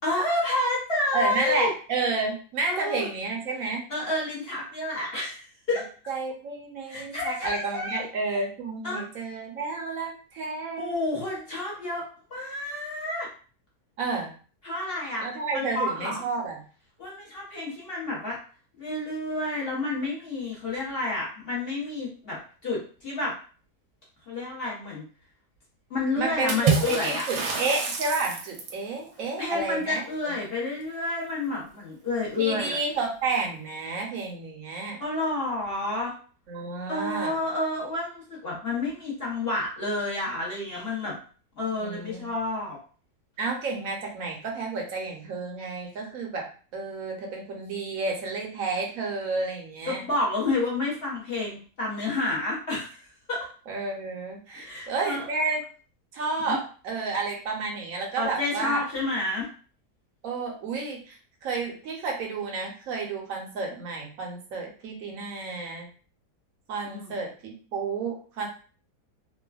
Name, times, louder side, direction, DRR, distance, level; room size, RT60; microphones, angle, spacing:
voice 1, 0.0-1.7 2.7-3.1 3.6-5.9 6.9-8.4 8.8-9.0 10.8-12.0 12.3-13.3 14.6-15.3 15.5-16.2 17.0-18.4 18.8-23.3 24.3-25.0 25.9-27.2 29.4-32.8 35.0-36.1 36.9-41.2 41.5-42.8 49.8-53.0 53.3-53.5 54.5-55.3 56.5-56.6 58.2-59.5 66.8-67.1, left 2 dB, 45° left, -5 dB, 0.9 m, -30 dB
voice 2, 1.1-3.8 5.7-5.8 6.1-11.0 14.0-14.3 15.2-16.6 26.2-30.3 32.4-35.0 36.5-37.4 41.8-42.3 43.4-50.0 53.7-55.6 56.1-58.8 60.2-65.9 66.7-68.5, right 3 dB, 65° right, 0 dB, 1.1 m, -31 dB
Water / Splash splatter, 26.5-28.9, right 5 dB, 85° right, 1.2 m, -27 dB
3.2 x 2.2 x 2.3 m, 0.39 s
omnidirectional pair, 1.7 m